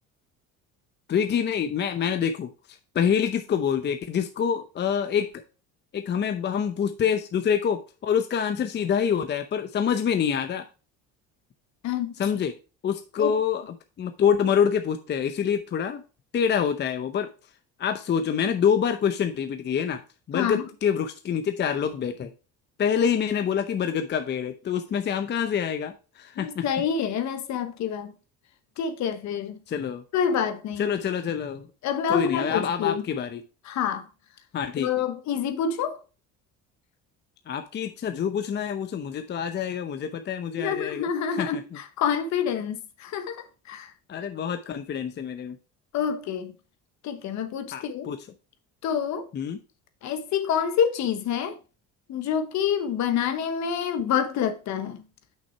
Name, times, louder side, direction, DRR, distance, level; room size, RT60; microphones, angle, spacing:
voice 1, 1.1-2.5 2.9-5.4 5.9-10.6 12.2-12.5 12.8-16.0 16.3-17.3 17.8-20.0 20.3-22.3 22.8-26.8 29.7-30.0 30.8-31.7 32.1-33.4 34.5-34.9 37.5-41.8 44.1-45.6 47.7-48.3 49.3-49.6, left 7 dB, 35° left, 0.7 m, -26 dB
voice 2, 11.8-12.2 13.2-13.3 20.3-20.6 26.4-28.1 28.8-29.6 30.1-30.9 31.8-33.0 33.7-34.0 34.8-36.0 40.5-43.9 45.9-46.5 47.0-48.1 48.8-49.3 50.0-51.6 52.1-55.0, left 8 dB, 60° left, 1.2 m, -27 dB
6.0 x 5.8 x 4.5 m
cardioid pair, 110°, 31 cm